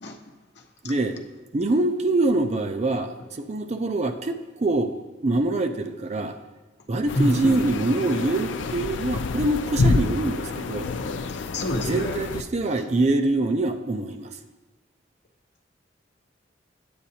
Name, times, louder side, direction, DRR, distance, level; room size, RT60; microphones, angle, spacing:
voice 1, 0.8-1.2 1.5-4.9 5.2-6.4 6.9-10.9 11.8-14.4, right 2 dB, 35° right, 7 dB, 0.4 m, -24 dB
sound 1, 7.1-12.4, left 3 dB, 75° left, 0.4 m, -28 dB
voice 2, 7.2-7.6 11.3-12.2 12.7-12.8, left 1 dB, 60° left, 4 dB, 0.8 m, -27 dB
10.0 x 8.6 x 2.8 m, 1.2 s
head